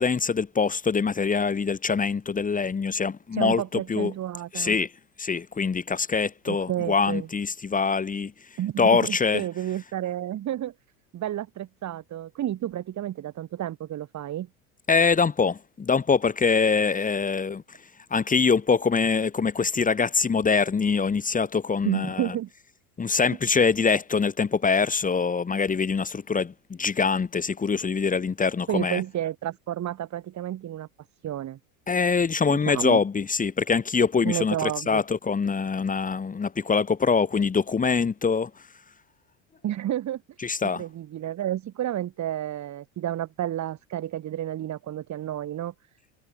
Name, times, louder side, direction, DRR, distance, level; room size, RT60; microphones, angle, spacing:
voice 1, 0.0-4.1 4.5-4.9 5.2-8.3 8.8-9.4 14.9-17.6 18.1-22.3 23.0-29.0 31.9-38.5 40.4-40.8, left 5 dB, 20° left, 1.9 m, -24 dB
voice 2, 3.3-4.8 6.5-7.3 8.6-10.7 11.1-14.5 21.8-22.5 28.7-30.9 31.2-31.6 32.5-33.0 34.2-35.0 39.6-45.7, right 12 dB, 45° right, 6.6 m, -31 dB
hypercardioid pair, 95°, 40 cm